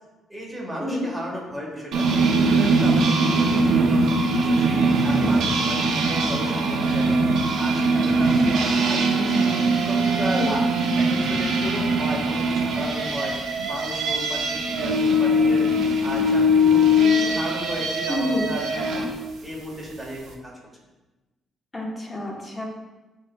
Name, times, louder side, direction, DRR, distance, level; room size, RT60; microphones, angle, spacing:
voice 1, 0.3-4.1 4.4-9.5 9.9-13.3 13.7-15.7 16.0-19.1 19.4-20.5, equal, 10° right, -4 dB, 1.4 m, -34 dB
sound 1, 1.9-19.1, right 1 dB, 75° right, 0.6 m, -21 dB
voice 2, 18.1-18.5 21.7-22.6, left 1 dB, 20° left, -1 dB, 1.0 m, -28 dB
7.9 x 2.7 x 2.2 m, 1.1 s
cardioid pair, 90°, 0 cm